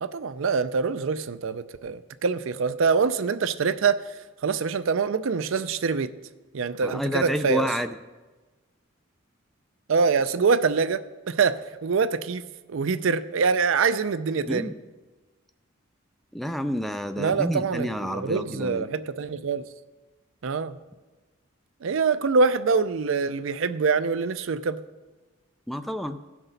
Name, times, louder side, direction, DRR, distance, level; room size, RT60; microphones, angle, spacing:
voice 1, 0.0-4.0 4.4-6.1 6.5-7.7 9.9-11.0 11.3-11.6 11.8-12.4 12.7-14.7 17.2-19.6 20.4-20.8 21.8-24.8, right 5 dB, 70° right, 13 dB, 0.5 m, -24 dB
voice 2, 6.8-7.9 14.5-14.7 16.3-18.9 25.7-26.2, equal, ahead, 9 dB, 0.3 m, -29 dB
16.5 x 6.0 x 3.9 m, 1.2 s
head